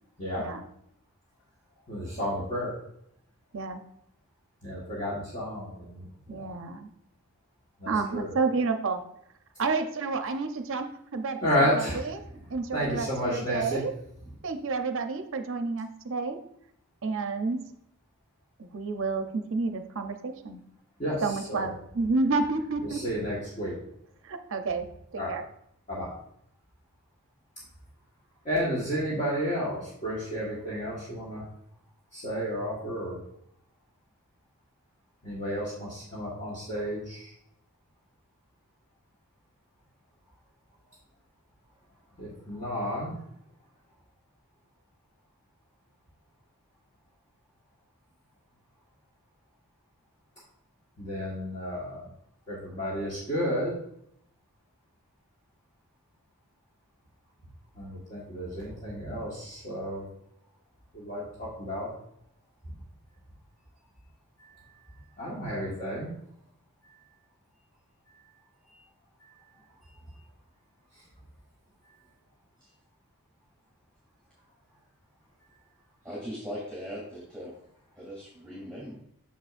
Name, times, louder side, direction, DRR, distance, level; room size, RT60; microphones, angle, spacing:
voice 1, 1.9-2.7 4.6-6.5 7.8-8.3 11.4-12.1 12.5-13.8 21.0-21.7 22.8-23.7 25.2-25.3 25.9-26.1 28.4-31.4 32.1-33.2 35.2-37.3 42.2-43.2 51.0-52.1 52.5-53.7 57.7-60.1 60.9-61.9 64.4-64.7 65.2-66.1 66.8-67.0 69.2-69.3 70.9-71.0, equal, 30° left, -7 dB, 1.5 m, -32 dB
voice 2, 6.3-6.9 7.9-9.0 9.6-11.5 11.7-11.8 12.1-12.2 12.5-13.9 14.4-16.4 17.0-17.6 18.6-20.6 21.2-23.0 24.2-24.9 25.1-25.4, right 4 dB, 60° right, 7 dB, 0.6 m, -30 dB
voice 3, 76.0-77.5 78.0-78.9, equal, 5° left, -7 dB, 2.4 m, -39 dB
6.8 x 6.2 x 2.5 m, 0.72 s
head